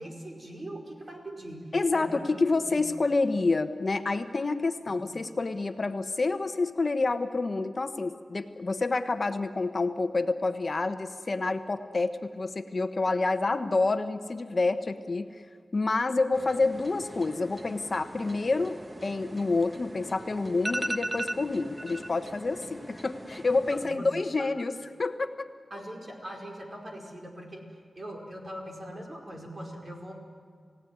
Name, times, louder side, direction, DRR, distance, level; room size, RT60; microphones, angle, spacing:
voice 1, 0.0-2.2 2.6-2.7 4.9-5.0 23.7-24.1 24.4-24.5 25.7-30.1, right 1 dB, 40° right, 1 dB, 4.9 m, -41 dB
voice 2, 1.7-15.3 15.7-24.7 25.0-25.5, left 3 dB, 45° left, 9 dB, 1.1 m, -28 dB
sound 1, 16.3-23.9, right 1 dB, 20° right, 1.3 m, -39 dB
29.0 x 17.0 x 9.5 m, 2.3 s
wide cardioid pair, 85°, 0 cm